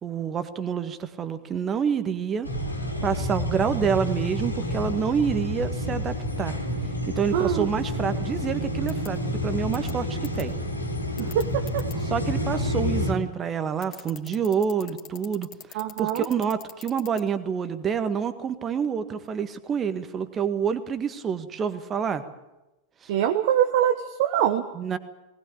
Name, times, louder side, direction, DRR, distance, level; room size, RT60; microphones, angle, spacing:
voice 1, 0.0-2.5 3.0-6.5 7.1-10.5 12.1-22.2 23.0-23.1 24.7-25.0, right 7 dB, 25° right, 11 dB, 1.7 m, -28 dB
sound 1, 2.4-13.1, left 1 dB, 85° left, 2.8 m, -29 dB
voice 2, 7.3-7.7 11.2-11.9 15.7-16.3 23.1-24.6, right 10 dB, 50° right, 7 dB, 1.2 m, -24 dB
sound 2, 8.9-9.1 9.7-9.9 10.2-10.4 11.2-11.9 13.8-17.2, left 10 dB, 35° left, 2.6 m, -41 dB
19.5 x 19.5 x 8.7 m, 0.99 s
figure-of-eight pair, 90°, 0 cm